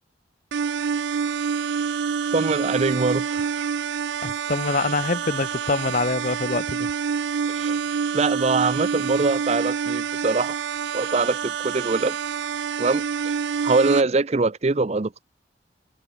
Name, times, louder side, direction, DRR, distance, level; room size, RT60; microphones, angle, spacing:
sound 1, 0.5-14.0, right 6 dB, 85° right, 0.4 m, -27 dB
voice 1, 2.3-3.7 7.5-7.8 8.1-10.6 10.9-12.2 12.8-13.3 13.6-15.2, right 3 dB, 35° right, 0.6 m, -23 dB
voice 2, 4.2-6.9, left 3 dB, 45° left, 0.9 m, -25 dB
head